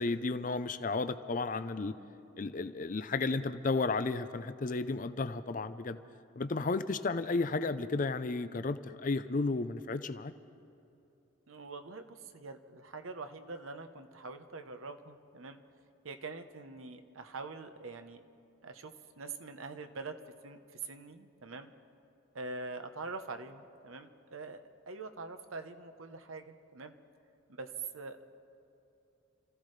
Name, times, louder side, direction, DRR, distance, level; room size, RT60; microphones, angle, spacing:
voice 1, 0.0-1.9 2.4-6.0 6.4-10.3, left 3 dB, 40° left, 11 dB, 0.5 m, -33 dB
voice 2, 11.5-15.6 16.0-18.2 18.6-21.7 22.3-26.9 27.5-28.2, right 3 dB, 85° right, 7 dB, 1.0 m, -44 dB
27.5 x 15.0 x 3.3 m, 2.8 s
head